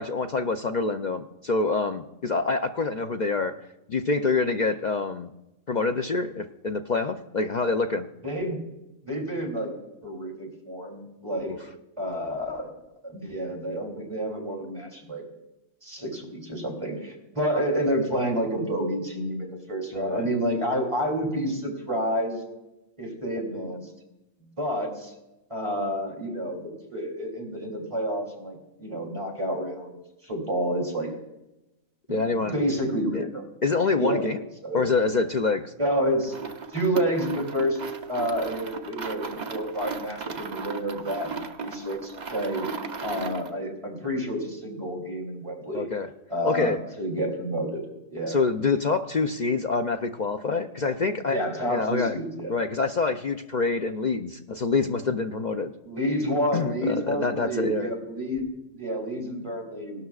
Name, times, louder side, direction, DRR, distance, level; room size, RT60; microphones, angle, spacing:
voice 1, 0.0-3.5 3.9-5.3 5.7-8.1 11.4-11.6 19.9-20.3 32.1-32.6 33.1-33.3 33.6-34.4 34.7-35.7 45.7-46.1 46.4-46.8 48.3-51.4 51.7-52.2 52.5-55.7 56.5-57.9, left 4 dB, 65° left, 6 dB, 0.4 m, -26 dB
voice 2, 8.2-8.6 9.0-9.7 10.0-11.6 12.0-12.7 13.0-15.2 15.8-22.4 23.0-23.9 24.6-25.1 25.5-30.0 30.2-31.1 32.1-33.5 34.0-34.3 34.6-34.8 35.8-36.4 36.7-37.8 38.1-42.7 43.0-45.9 46.3-47.8 48.1-48.4 51.3-52.5 55.8-60.1, equal, 20° right, 0 dB, 3.0 m, -29 dB
sound 1, 36.2-43.6, right 5 dB, 40° right, 0.8 m, -36 dB
18.5 x 12.5 x 2.4 m, 0.95 s
omnidirectional pair, 1.4 m